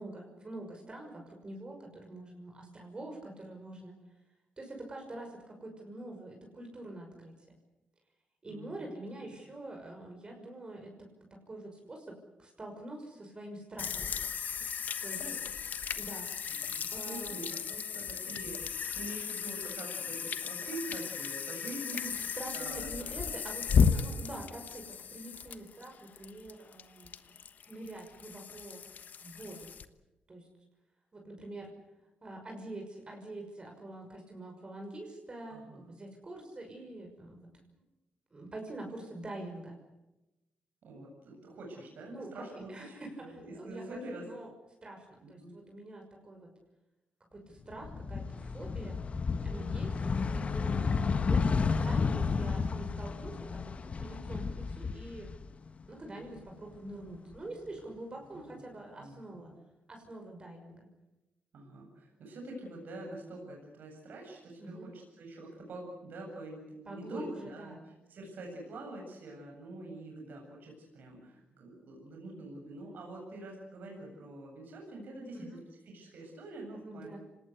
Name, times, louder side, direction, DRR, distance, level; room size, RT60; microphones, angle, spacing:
voice 1, 0.0-4.0 4.6-7.3 8.4-11.1 11.5-14.1 15.0-15.2 16.0-16.4 16.9-17.4 17.9-18.1 22.4-27.1 27.7-28.8 29.2-29.7 30.3-30.5 31.1-31.7 32.2-37.4 38.3-39.8 42.1-43.3 43.5-44.5 44.8-46.5 47.3-49.0 49.4-53.7 54.0-55.3 55.9-59.5 59.9-60.9 64.6-64.9 66.9-67.8 75.3-75.6 76.8-77.2, right 1 dB, 30° right, 2 dB, 6.1 m, -45 dB
voice 2, 8.5-8.9 15.2-15.4 16.6-23.3 23.7-23.8 35.5-35.9 40.8-44.3 45.2-45.5 58.3-58.7 59.0-59.4 61.5-75.6 75.9-77.2, right 2 dB, 75° right, 1 dB, 7.9 m, -45 dB
sound 1, 13.8-29.9, left 6 dB, 65° left, 1.2 m, -34 dB
sound 2, 47.7-55.8 56.2-57.4, left 5 dB, 45° left, 1.2 m, -32 dB
27.0 x 19.5 x 8.2 m, 0.99 s
cardioid pair, 95°, 3 cm